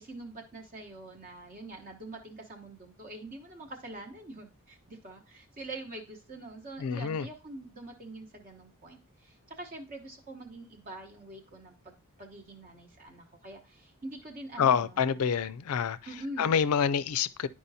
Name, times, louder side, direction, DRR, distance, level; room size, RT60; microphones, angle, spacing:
voice 1, 0.0-15.3 16.1-16.6, right 2 dB, 40° right, 0.9 m, -45 dB
voice 2, 6.8-7.3 14.6-16.0 16.4-17.5, left 7 dB, 70° left, 0.4 m, -27 dB
10.0 x 4.9 x 2.7 m
head